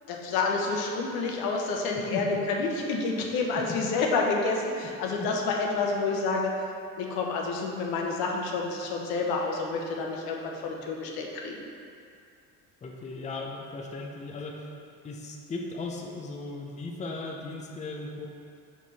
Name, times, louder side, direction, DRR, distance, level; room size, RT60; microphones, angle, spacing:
voice 1, 0.1-6.5 7.0-11.7, left 3 dB, 80° left, 0 dB, 1.0 m, -29 dB
voice 2, 12.8-14.7 15.0-18.3, left 3 dB, 20° left, 0 dB, 0.6 m, -37 dB
5.9 x 4.8 x 4.1 m, 2.4 s
cardioid pair, 125°, 36 cm